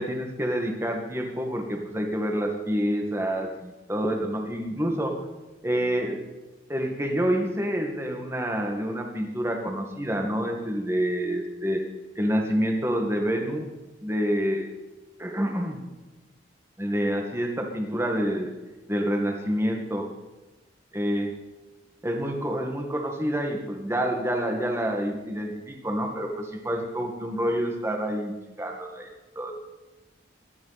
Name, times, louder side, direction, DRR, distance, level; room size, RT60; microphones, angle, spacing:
voice 1, 0.0-5.1 5.6-6.2 6.7-11.8 12.2-13.7 14.0-14.7 15.2-15.8 16.8-18.5 18.9-20.1 20.9-21.3 22.0-29.1 29.4-29.6, equal, 15° right, 2 dB, 1.9 m, -27 dB
18.5 x 13.0 x 4.2 m, 1.1 s
head